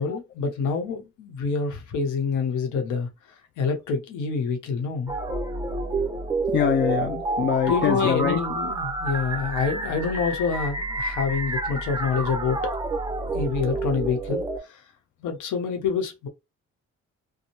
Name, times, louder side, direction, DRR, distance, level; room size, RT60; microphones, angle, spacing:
voice 1, 0.0-3.1 3.6-5.1 7.7-12.6 13.3-14.8 15.2-16.3, left 5 dB, 85° left, 0.9 m, -27 dB
sound 1, 5.1-14.6, right 3 dB, 15° right, 0.6 m, -29 dB
voice 2, 6.5-8.4, left 8 dB, 40° left, 0.4 m, -24 dB
2.6 x 2.1 x 3.0 m
cardioid pair, 90°, 30 cm